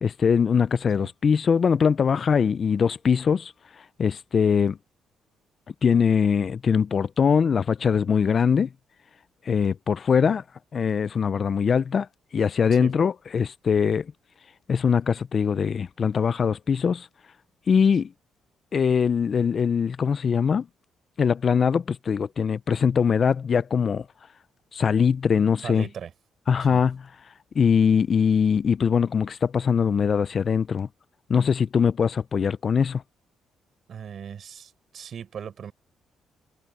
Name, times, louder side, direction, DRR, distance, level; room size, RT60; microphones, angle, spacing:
voice 1, 0.0-3.5 4.0-4.8 5.8-8.7 9.5-10.4 10.7-12.1 12.3-14.1 14.7-17.1 17.7-18.1 18.7-20.7 21.2-24.0 24.7-25.8 26.5-27.0 27.5-30.9 31.3-33.0, left 6 dB, 45° left, 0.5 m, -22 dB
voice 2, 25.6-26.1 26.7-26.8 33.9-35.7, right 8 dB, 55° right, 5.6 m, -38 dB
cardioid pair, 90°, 0 cm